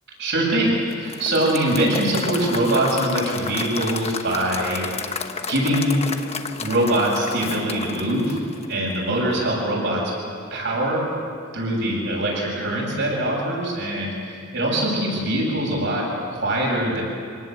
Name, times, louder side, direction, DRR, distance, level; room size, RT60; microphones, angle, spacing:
voice 1, 0.2-5.0 5.5-6.0 6.6-8.4 8.7-10.1 10.5-11.1 11.5-17.0, right 1 dB, 60° right, -2 dB, 7.9 m, -23 dB
Applause / Crowd, 0.9-9.1, left 5 dB, 30° left, 1.1 m, -32 dB
26.5 x 18.5 x 8.2 m, 2.3 s
head